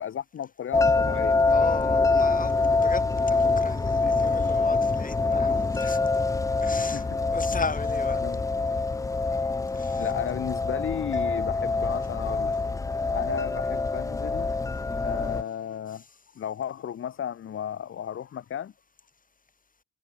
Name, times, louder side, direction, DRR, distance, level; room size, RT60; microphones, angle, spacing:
voice 1, 0.0-1.4 6.8-7.1 8.2-8.4 10.0-12.6 13.1-14.5 14.9-16.0 16.4-18.7, left 9 dB, 45° left, 0.8 m, -34 dB
sound 1, 0.7-15.4, left 3 dB, 10° left, 0.4 m, -25 dB
voice 2, 1.5-6.0 6.6-7.1 7.3-8.2 9.7-10.1 15.9-16.1, left 4 dB, 25° left, 3.8 m, -36 dB
cardioid pair, 90°, 30 cm